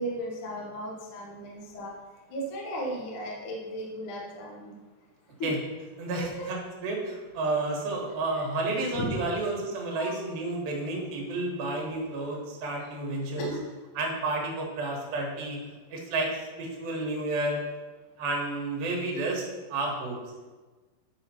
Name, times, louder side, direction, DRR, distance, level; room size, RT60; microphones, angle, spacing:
voice 1, 0.0-1.9 2.3-4.7 5.4-5.5 6.2-6.5 8.9-9.1 10.0-10.1 13.4-13.6, equal, 55° left, -2 dB, 1.7 m, -35 dB
voice 2, 6.0-13.6 14.0-17.7 18.2-20.2, right 2 dB, 85° right, -1 dB, 3.3 m, -31 dB
9.1 x 5.7 x 4.3 m, 1.3 s
omnidirectional pair, 4.0 m